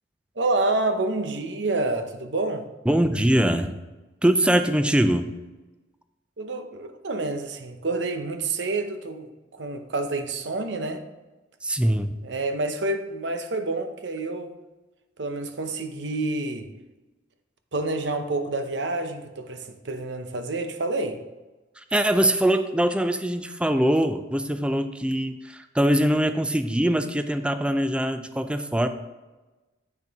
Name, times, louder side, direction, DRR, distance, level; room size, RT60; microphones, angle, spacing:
voice 1, 0.4-2.7 6.4-11.0 12.2-14.6 15.2-16.7 17.7-21.2, right 2 dB, 70° right, 8 dB, 0.8 m, -28 dB
voice 2, 2.9-3.8 4.2-5.3 11.6-12.1 21.8-28.9, right 1 dB, 5° right, 9 dB, 0.4 m, -22 dB
8.2 x 6.7 x 3.5 m, 1.1 s
head